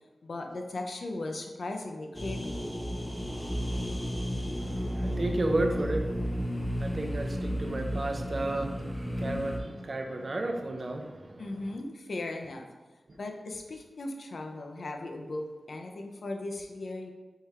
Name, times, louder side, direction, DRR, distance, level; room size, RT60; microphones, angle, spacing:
voice 1, 0.2-2.6 11.4-12.7 13.1-17.1, left 2 dB, 70° left, 3 dB, 0.5 m, -37 dB
sound 1, 2.1-9.6, equal, 15° left, 0.6 m, -33 dB
voice 2, 4.6-11.4 13.1-13.2, right 2 dB, 50° right, 3 dB, 0.5 m, -33 dB
3.7 x 3.5 x 4.2 m, 1.2 s
wide cardioid pair, 80°, 0 cm